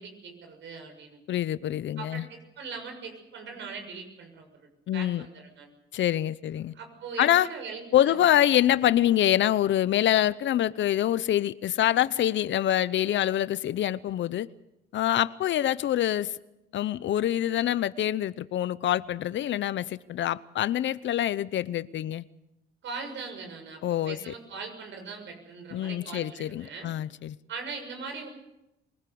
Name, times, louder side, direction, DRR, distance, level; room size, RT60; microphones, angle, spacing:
voice 1, 0.0-1.2 2.0-5.7 6.7-8.2 22.8-26.9 27.5-28.3, right 5 dB, 70° right, 6.7 m, -40 dB
voice 2, 1.3-2.3 4.9-5.2 5.9-6.7 7.2-7.5 7.9-14.5 14.9-16.4 16.7-22.2 23.8-24.3 25.7-27.3, left 12 dB, 70° left, 0.8 m, -25 dB
24.0 x 19.5 x 7.0 m
cardioid pair, 90°, 20 cm